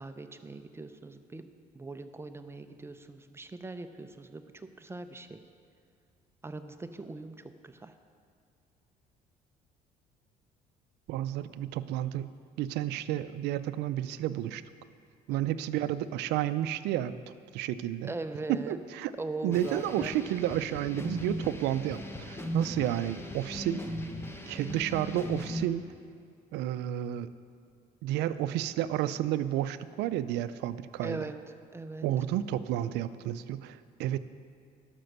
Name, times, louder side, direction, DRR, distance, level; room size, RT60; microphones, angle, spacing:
voice 1, 0.0-5.4 6.4-7.9 15.3-15.5 18.0-18.8 19.2-20.1 31.0-32.1, right 2 dB, 15° right, 8 dB, 0.6 m, -41 dB
voice 2, 11.1-12.3 12.6-14.6 15.3-17.1 17.5-18.2 18.5-19.1 19.4-23.8 24.5-25.8 26.5-27.3 28.0-31.3 32.0-34.2, right 12 dB, 85° right, 14 dB, 0.4 m, -31 dB
sound 1, 19.5-25.6, left 1 dB, 15° left, 0.9 m, -38 dB
12.0 x 6.1 x 6.6 m, 2.3 s
cardioid pair, 110°, 17 cm